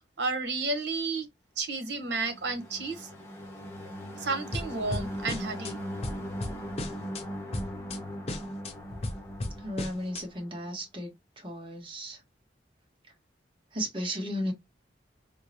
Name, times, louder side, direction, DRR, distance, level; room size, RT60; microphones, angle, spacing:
voice 1, 0.2-1.3 1.6-3.1 4.2-5.8, right 3 dB, 75° right, 1.0 m, -31 dB
sound 1, 2.0-10.7, equal, 15° left, 0.8 m, -40 dB
sound 2, 4.5-5.7 6.0-7.2 7.5-8.0 8.3-10.2, left 2 dB, 35° left, 0.5 m, -35 dB
voice 2, 9.6-11.1 11.4-12.2 13.7-14.5, equal, 30° right, 1.1 m, -34 dB
3.6 x 2.0 x 2.9 m
head